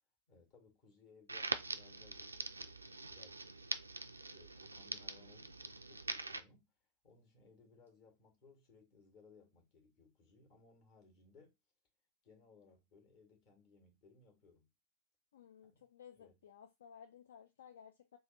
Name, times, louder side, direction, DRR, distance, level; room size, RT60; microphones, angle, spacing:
voice 1, 0.3-3.5 4.3-6.7 7.0-11.6 12.2-14.7 15.6-15.9 16.2-16.4, left 4 dB, 45° left, 1.5 m, -65 dB
Crackle, 1.3-6.4, right 3 dB, 80° right, 0.3 m, -43 dB
voice 2, 15.3-18.2, left 8 dB, 65° left, 0.3 m, -57 dB
3.3 x 2.3 x 3.8 m
figure-of-eight pair, 90°, 0 cm